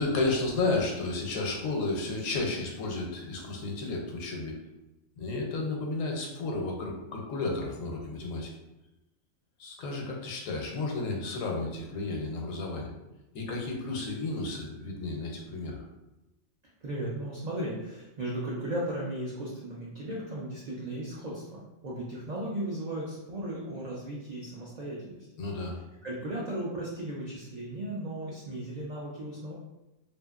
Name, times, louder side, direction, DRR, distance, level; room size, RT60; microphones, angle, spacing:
voice 1, 0.0-4.6 5.2-8.5 9.6-12.9 13.3-15.8 25.4-25.8, left 3 dB, 80° left, 0 dB, 1.0 m, -32 dB
voice 2, 16.8-25.2 26.0-29.5, right 1 dB, 75° right, -5 dB, 0.4 m, -36 dB
2.7 x 2.5 x 2.3 m, 1.0 s
omnidirectional pair, 1.3 m